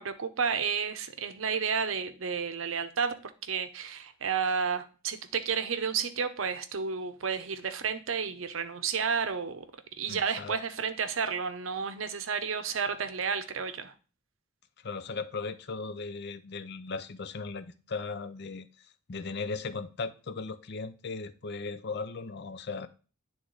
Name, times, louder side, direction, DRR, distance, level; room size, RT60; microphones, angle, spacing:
voice 1, 0.0-9.6 10.0-13.9, right 6 dB, 80° right, 0.7 m, -31 dB
voice 2, 10.1-10.6 14.8-18.7 19.1-22.9, left 4 dB, 55° left, 0.6 m, -37 dB
9.8 x 3.6 x 3.9 m
head